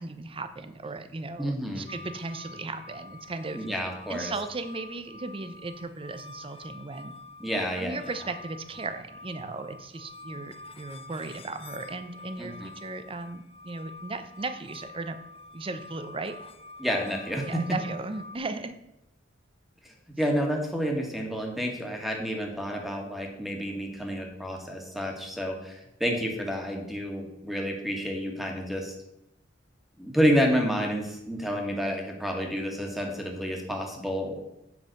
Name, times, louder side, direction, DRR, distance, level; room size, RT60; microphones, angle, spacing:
voice 1, 0.0-3.7 4.1-7.1 7.8-15.2 15.5-16.3 17.5-18.7, right 3 dB, 30° right, 10 dB, 0.6 m, -36 dB
voice 2, 1.4-1.9 3.5-4.3 7.4-8.0 12.4-12.7 16.8-17.6 19.8-28.9 30.0-34.3, equal, ahead, 1 dB, 1.6 m, -29 dB
sound 1, 1.9-18.4, left 3 dB, 30° left, 0.6 m, -47 dB
7.8 x 5.5 x 6.5 m, 0.86 s
head